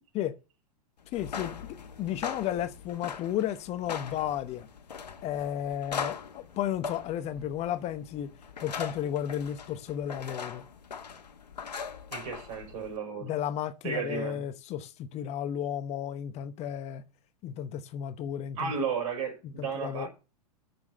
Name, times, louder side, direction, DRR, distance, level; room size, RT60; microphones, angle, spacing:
sound 1, 1.1-13.0, left 6 dB, 80° left, 1.3 m, -41 dB
voice 1, 1.1-1.7 2.0-4.7 5.2-8.3 8.6-10.6 13.2-17.0 17.4-18.7 19.6-20.1, left 10 dB, 30° left, 0.8 m, -33 dB
voice 2, 12.1-13.3 13.8-14.4 18.6-20.1, right 6 dB, 55° right, 5.4 m, -33 dB
7.1 x 7.0 x 7.7 m
hypercardioid pair, 105°, 21 cm